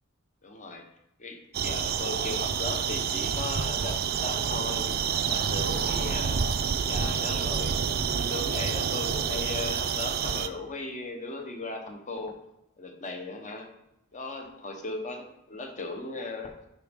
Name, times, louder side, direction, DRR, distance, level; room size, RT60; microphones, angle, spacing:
voice 1, 0.4-0.8 1.2-4.9 5.3-6.4 6.8-7.8 8.1-12.4 12.8-13.7 14.1-16.5, left 3 dB, 35° left, 3 dB, 0.9 m, -37 dB
sound 1, 1.5-10.5, right 7 dB, 45° right, 0.4 m, -28 dB
10.0 x 4.0 x 3.6 m, 0.85 s
head